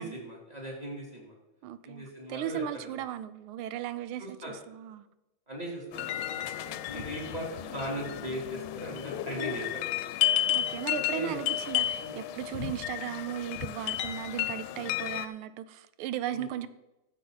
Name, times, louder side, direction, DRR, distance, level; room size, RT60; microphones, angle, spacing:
voice 1, 0.0-1.3 1.8-2.9 4.2-4.5 5.5-10.1 11.1-11.5 12.0-12.2 16.3-16.5, equal, 20° right, -3 dB, 3.0 m, -39 dB
voice 2, 1.6-4.4 4.7-5.1 6.9-7.1 10.5-16.7, right 10 dB, 90° right, 14 dB, 1.5 m, -36 dB
sound 1, 5.9-15.3, left 12 dB, 90° left, 1.4 m, -32 dB
13.5 x 7.5 x 4.0 m, 0.97 s
omnidirectional pair, 2.3 m